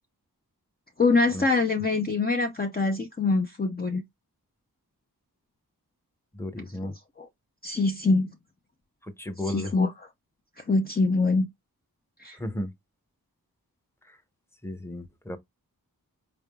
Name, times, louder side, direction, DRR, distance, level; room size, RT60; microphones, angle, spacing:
voice 1, 1.0-4.0 6.8-7.3 7.6-8.3 9.5-9.9 10.7-11.5 12.2-12.4, left 3 dB, 25° left, 0.6 m, -24 dB
voice 2, 6.3-6.9 9.0-9.7 12.4-12.7 14.0-14.2 14.6-15.4, left 1 dB, 5° left, 0.9 m, -34 dB
4.6 x 3.4 x 2.3 m
cardioid pair, 45°, 38 cm